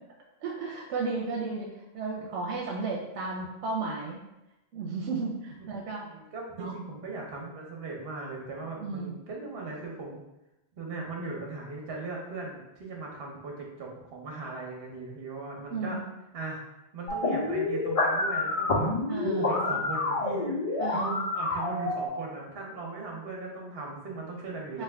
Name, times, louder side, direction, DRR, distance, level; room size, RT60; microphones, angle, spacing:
voice 1, 0.4-4.2 4.7-6.0 6.6-6.7 8.8-9.2 15.7-16.0 19.1-19.6 20.8-21.2 24.7-24.8, right 3 dB, 85° right, -2 dB, 0.9 m, -34 dB
voice 2, 5.8-10.2 10.8-16.0 16.3-16.6 16.9-24.8, right 3 dB, 60° right, -1 dB, 1.1 m, -38 dB
sound 1, 17.1-22.1, left 2 dB, 40° left, 0.5 m, -28 dB
3.4 x 2.7 x 3.4 m, 0.92 s
omnidirectional pair, 1.1 m